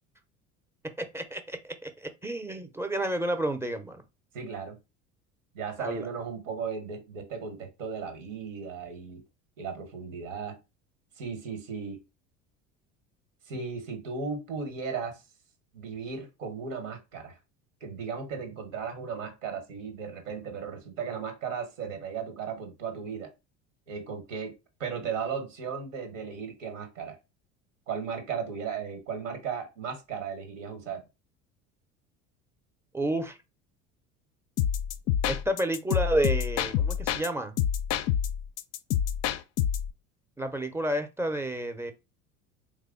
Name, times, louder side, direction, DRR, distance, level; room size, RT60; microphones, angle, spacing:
voice 1, 1.0-4.0 5.8-6.1 32.9-33.4 35.3-37.6 40.4-41.9, right 1 dB, 5° right, 0.5 m, -30 dB
voice 2, 4.3-4.8 5.5-9.2 9.6-10.6 11.2-12.0 13.5-15.2 15.7-17.4 17.8-23.3 23.9-27.2 27.9-31.0, right 6 dB, 85° right, 1.1 m, -36 dB
sound 1, 34.6-37.3 37.6-39.9, left 9 dB, 45° left, 0.4 m, -27 dB
3.3 x 2.1 x 3.6 m
hypercardioid pair, 75°, 37 cm